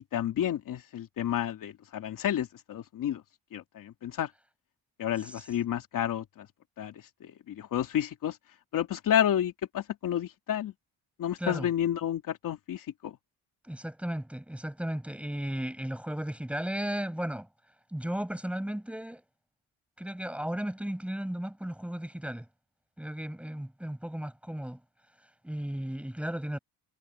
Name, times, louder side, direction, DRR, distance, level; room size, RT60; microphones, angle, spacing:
voice 1, 0.1-3.2 3.5-4.3 5.0-6.5 6.8-8.4 8.7-10.7 11.2-13.2, left 10 dB, 55° left, 2.7 m, -30 dB
voice 2, 11.4-11.7 13.6-17.5 17.9-19.2 20.0-22.5 23.0-24.8 25.4-26.6, right 1 dB, 5° right, 6.7 m, -35 dB
cardioid pair, 145°, 40 cm